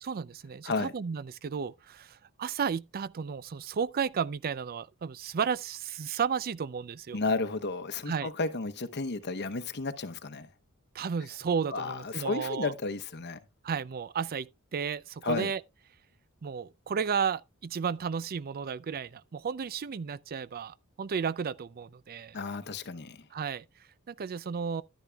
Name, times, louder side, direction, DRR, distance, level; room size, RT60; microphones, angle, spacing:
voice 1, 0.0-7.2 8.1-8.3 10.9-12.7 13.6-15.6 16.4-22.4 23.3-23.6 24.1-24.8, right 6 dB, 45° right, 0.4 m, -33 dB
voice 2, 7.1-10.5 11.7-13.4 15.2-15.5 22.3-23.3, left 3 dB, 50° left, 0.9 m, -32 dB
11.5 x 10.0 x 2.3 m
head